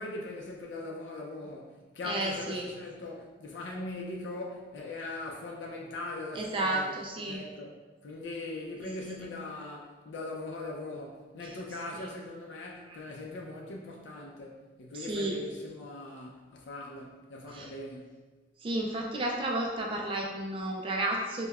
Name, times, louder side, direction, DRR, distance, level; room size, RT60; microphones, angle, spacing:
voice 1, 0.0-7.7 8.0-18.2, left 2 dB, 90° left, 0.4 m, -40 dB
voice 2, 2.0-2.6 6.4-7.4 15.1-15.3 17.5-17.7 18.6-21.5, right 1 dB, 30° right, 0.3 m, -32 dB
5.2 x 2.1 x 2.3 m
head